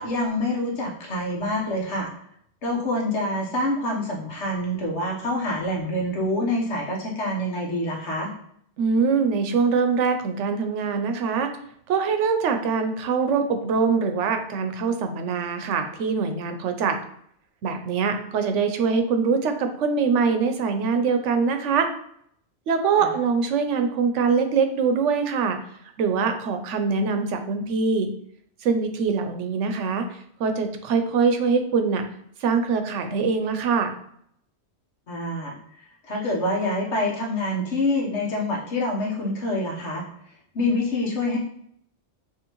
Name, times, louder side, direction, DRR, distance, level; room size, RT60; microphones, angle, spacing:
voice 1, 0.0-2.1 2.6-8.3 23.0-23.1 35.1-35.6 36.0-40.0 40.5-41.4, left 1 dB, 75° left, -1 dB, 1.4 m, -26 dB
voice 2, 8.8-11.5 11.9-17.0 17.6-21.9 22.7-25.6 26.0-28.1 28.6-30.1 30.4-32.0 32.4-33.9, right 5 dB, 85° right, 7 dB, 1.0 m, -23 dB
6.2 x 2.9 x 3.0 m, 0.68 s
omnidirectional pair, 1.2 m